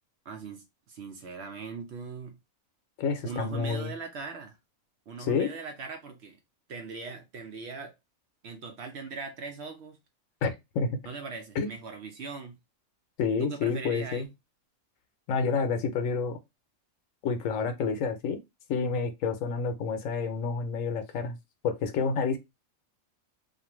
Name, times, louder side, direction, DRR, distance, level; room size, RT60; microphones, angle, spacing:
voice 1, 0.3-2.4 3.2-4.6 5.1-6.4 6.7-7.9 8.4-10.0 11.1-12.6 13.4-14.3, right 4 dB, 60° right, 0.8 m, -40 dB
voice 2, 3.0-3.9 5.2-5.5 10.4-11.0 11.6-11.7 13.2-14.3 15.3-16.4 17.2-18.4 18.7-21.4 21.6-22.4, left 5 dB, 75° left, 1.0 m, -29 dB
2.5 x 2.5 x 2.9 m
omnidirectional pair, 1.4 m